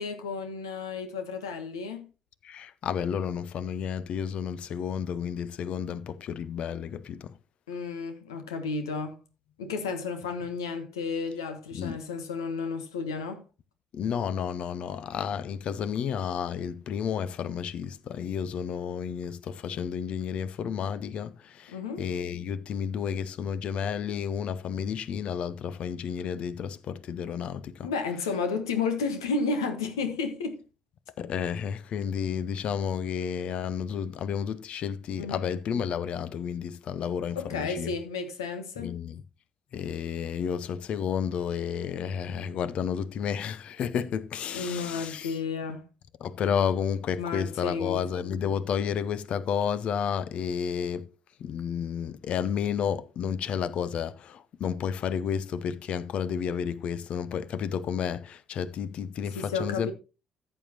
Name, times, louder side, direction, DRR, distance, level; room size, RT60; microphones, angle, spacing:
voice 1, 0.0-2.1 7.7-9.2 9.6-13.4 21.7-22.0 27.8-30.6 35.2-35.5 37.3-39.0 44.5-45.8 47.2-48.1 59.3-59.9, left 4 dB, 80° left, 1.1 m, -32 dB
voice 2, 2.4-7.4 11.7-12.0 13.9-27.9 31.2-37.9 38.8-39.2 39.7-45.4 46.2-51.1 51.4-59.9, left 7 dB, 55° left, 0.7 m, -31 dB
14.0 x 7.6 x 2.9 m
figure-of-eight pair, 45°, 2 cm